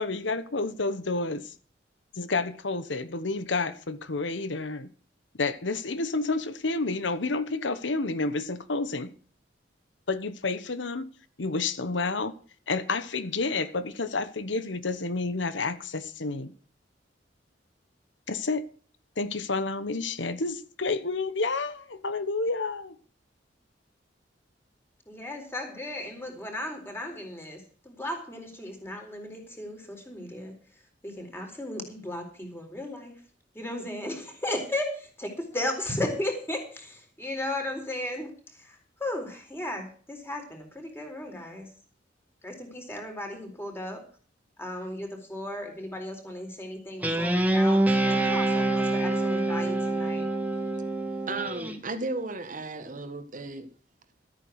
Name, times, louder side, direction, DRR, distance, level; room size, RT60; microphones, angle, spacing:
voice 1, 0.0-1.5 2.2-4.9 5.4-9.1 10.1-11.1 11.4-12.3 12.7-16.5 18.3-18.7 19.2-22.9, left 3 dB, 85° left, 1.1 m, -30 dB
voice 2, 25.1-33.2 33.5-41.7 42.4-44.0 44.6-50.3, left 1 dB, 15° left, 4.0 m, -35 dB
Guitar, 47.0-51.8, right 1 dB, 10° right, 1.7 m, -25 dB
voice 3, 51.3-53.7, right 3 dB, 45° right, 1.4 m, -34 dB
13.5 x 9.0 x 6.4 m
head